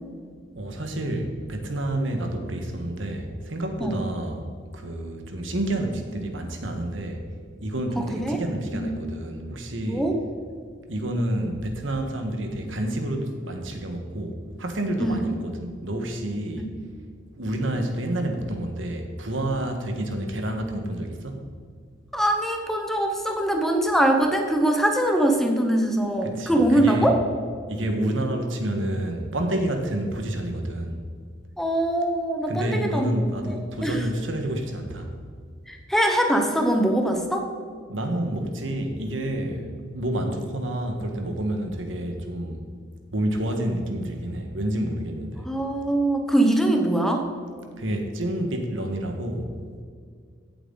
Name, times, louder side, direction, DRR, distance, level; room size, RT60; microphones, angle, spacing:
voice 1, 0.6-4.5 4.7-7.2 7.6-10.0 10.9-16.7 17.4-21.5 26.2-27.1 27.7-31.0 32.5-35.1 37.9-42.6 43.1-45.5 47.8-49.5, right 1 dB, 85° right, 4 dB, 1.6 m, -29 dB
voice 2, 8.0-8.4 8.7-8.9 9.8-10.2 15.0-15.2 16.6-16.7 22.1-27.2 31.6-33.6 33.8-34.1 35.7-37.5 45.4-47.2, right 1 dB, ahead, 3 dB, 1.1 m, -23 dB
16.5 x 7.9 x 4.1 m, 2.1 s
head